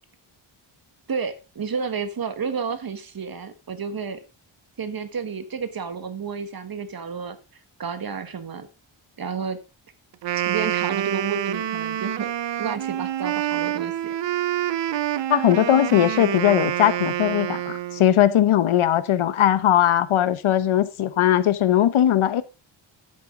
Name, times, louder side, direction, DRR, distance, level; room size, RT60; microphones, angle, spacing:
voice 1, 1.1-4.2 4.8-7.4 7.8-8.7 9.2-9.6 10.5-12.3 12.6-14.1, right 6 dB, 45° right, 1.5 m, -31 dB
Wind instrument woodwind instrument, 10.1-18.2, right 11 dB, 60° right, 0.7 m, -27 dB
voice 2, 15.3-22.4, left 11 dB, 75° left, 1.0 m, -19 dB
10.0 x 8.4 x 3.7 m
wide cardioid pair, 110°, 49 cm